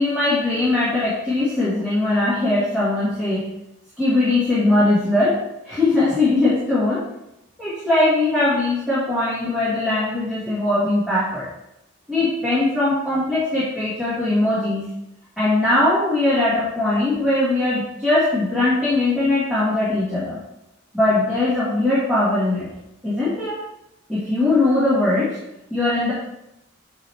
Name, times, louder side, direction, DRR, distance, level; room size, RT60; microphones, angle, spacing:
voice 1, 0.0-3.5 4.0-5.4 5.6-7.0 7.6-11.5 12.1-14.9 15.4-20.4 20.9-22.7 23.0-23.6 24.1-25.4 25.7-26.1, left 2 dB, 5° right, -11 dB, 1.8 m, -20 dB
7.9 x 3.5 x 4.4 m, 0.85 s
head